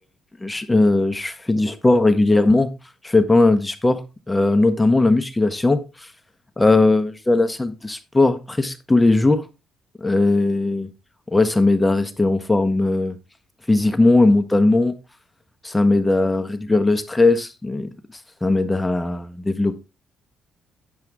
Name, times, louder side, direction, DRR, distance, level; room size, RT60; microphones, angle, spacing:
voice 1, 0.4-2.7 3.0-4.0 4.3-5.8 6.6-9.4 10.0-10.9 11.3-13.2 13.7-14.9 15.6-17.9 18.4-19.8, left 2 dB, 15° left, 1.0 m, -18 dB
9.6 x 7.7 x 3.6 m
cardioid pair, 90°, 0 cm